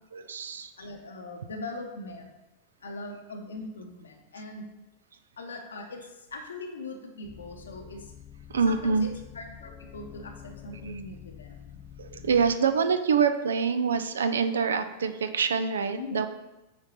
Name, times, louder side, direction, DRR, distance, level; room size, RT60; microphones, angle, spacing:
voice 1, 0.1-0.7 8.5-9.1 10.7-11.0 12.0-16.3, right 6 dB, 65° right, 10 dB, 0.4 m, -26 dB
voice 2, 0.8-2.3 2.8-4.7 5.4-8.1 8.7-11.8 12.2-12.3 16.0-16.3, left 2 dB, 70° left, 3 dB, 0.9 m, -41 dB
sound 1, 7.2-12.6, left 9 dB, 30° left, 0.4 m, -47 dB
8.7 x 3.9 x 4.2 m, 1.0 s
figure-of-eight pair, 90°, 0 cm